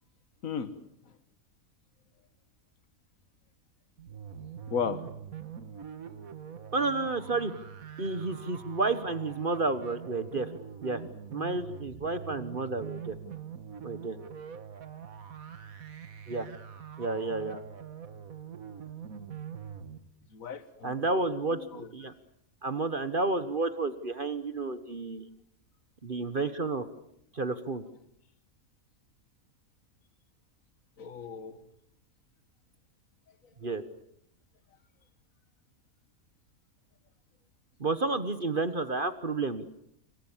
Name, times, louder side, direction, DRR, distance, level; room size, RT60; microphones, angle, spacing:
sound 1, 4.0-20.0, right 8 dB, 75° right, 2.0 m, -44 dB
voice 1, 4.7-5.0 20.3-21.0 21.5-21.9 31.0-31.6, left 6 dB, 70° left, 11 dB, 2.0 m, -35 dB
voice 2, 6.7-7.5 8.0-10.5 10.8-11.0 11.3-13.1 13.8-14.2 16.3-16.5 17.0-17.6 20.8-22.1 22.6-25.3 26.0-26.9 27.3-27.8 33.6-33.8 37.8-39.8, right 3 dB, 40° right, 11 dB, 1.4 m, -31 dB
27.0 x 25.5 x 7.4 m, 0.74 s
omnidirectional pair, 1.5 m